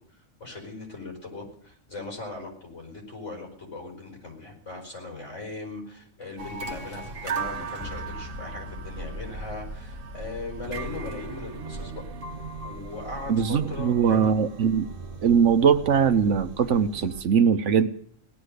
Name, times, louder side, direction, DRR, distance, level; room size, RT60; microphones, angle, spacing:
voice 1, 0.4-12.0 12.6-14.3, left 3 dB, 70° left, 0 dB, 5.3 m, -39 dB
sound 1, 1.5-1.9 7.8-15.9, left 5 dB, 20° left, 2.1 m, -48 dB
sound 2, 6.4-17.2, right 4 dB, 45° right, 1.4 m, -38 dB
voice 2, 13.3-14.9 15.2-17.9, right 7 dB, 70° right, 10 dB, 1.2 m, -21 dB
17.5 x 12.0 x 6.6 m, 0.62 s
omnidirectional pair, 1.3 m